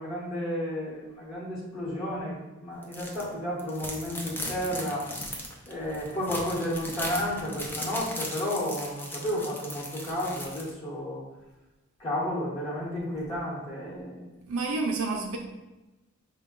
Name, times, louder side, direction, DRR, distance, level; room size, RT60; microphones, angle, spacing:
voice 1, 0.0-5.1 5.7-11.2 12.0-14.3, equal, 25° left, -9 dB, 1.1 m, -32 dB
sound 1, 2.8-3.2 3.6-10.7, left 1 dB, 10° left, 0.5 m, -38 dB
voice 2, 14.5-15.4, right 3 dB, 70° right, 1 dB, 0.5 m, -29 dB
4.9 x 2.2 x 3.6 m, 1.1 s
head